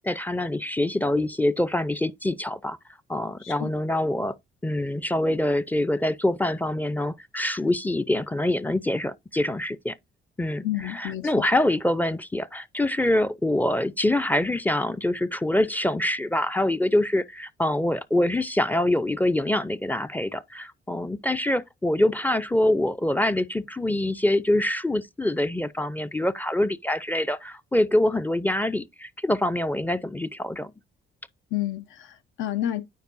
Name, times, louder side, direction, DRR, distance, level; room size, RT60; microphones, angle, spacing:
voice 1, 0.0-2.8 3.1-4.4 4.6-10.0 10.4-30.7, left 1 dB, 10° left, 0.4 m, -25 dB
voice 2, 10.6-11.3 31.5-32.8, left 13 dB, 80° left, 0.8 m, -30 dB
9.3 x 5.1 x 2.6 m
cardioid pair, 90°, 20 cm